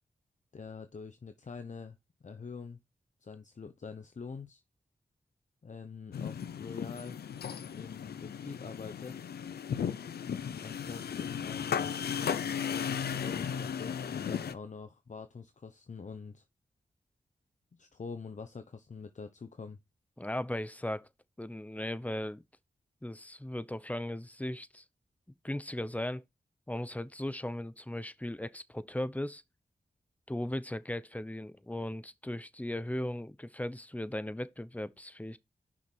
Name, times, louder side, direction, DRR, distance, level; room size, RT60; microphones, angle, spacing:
voice 1, 0.5-2.0 2.2-2.8 3.2-4.6 5.6-7.2 7.7-9.2 10.6-16.4 17.7-19.8, left 5 dB, 50° left, 0.9 m, -45 dB
sound 1, 6.1-14.5, left 8 dB, 80° left, 0.6 m, -35 dB
voice 2, 20.2-21.1 21.4-22.4 23.0-24.8 25.4-26.2 26.7-29.4 30.3-35.4, left 1 dB, 10° left, 0.8 m, -37 dB
6.2 x 5.8 x 4.5 m
cardioid pair, 45°, 16 cm